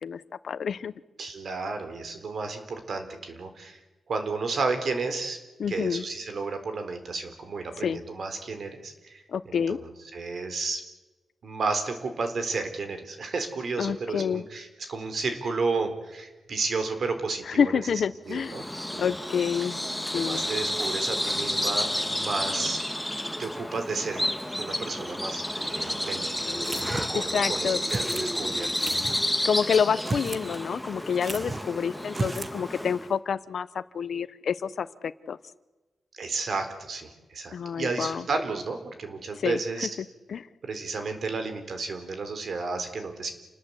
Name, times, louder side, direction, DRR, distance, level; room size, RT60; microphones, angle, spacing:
voice 1, 0.0-0.9 5.6-6.0 7.8-8.0 9.3-9.8 13.8-14.4 17.5-18.6 19.0-19.8 20.1-20.4 27.1-27.8 29.4-35.4 37.5-38.2 39.4-39.6 40.3-40.5, left 7 dB, 70° left, 15 dB, 1.0 m, -28 dB
voice 2, 1.2-3.8 4.1-5.4 5.7-10.8 11.4-17.8 18.2-18.7 18.9-19.1 20.1-22.8 23.4-24.2 24.6-29.0 29.3-29.5 36.1-39.9 40.6-43.3, right 4 dB, 60° right, 8 dB, 4.1 m, -32 dB
Bird vocalization bird call bird song, 18.3-33.1, left 1 dB, 5° left, 1.6 m, -31 dB
sound 1, 26.6-27.3 27.9-28.3 28.8-29.2 29.9-30.5 30.7-30.8 31.2-31.7 32.1-32.6, right 3 dB, 30° right, 1.1 m, -34 dB
28.5 x 20.0 x 8.2 m, 1.1 s
wide cardioid pair, 125°, 0 cm